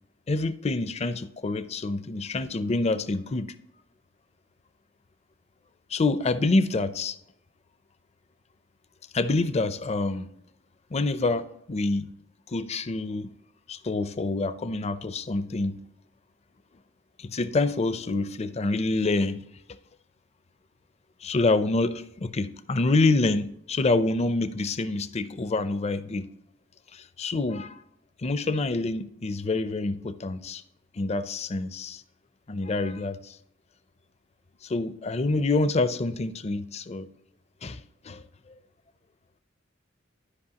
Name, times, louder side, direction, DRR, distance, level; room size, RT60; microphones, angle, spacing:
voice 1, 0.3-3.5 5.9-7.2 9.1-10.3 10.9-12.1 12.5-13.3 13.7-15.8 17.2-19.4 21.2-26.3 26.9-27.8 28.2-30.6 30.9-32.0 32.5-33.4 34.6-37.1 37.6-38.5, left 3 dB, 35° left, 0.5 m, -27 dB
12.0 x 5.4 x 2.8 m
head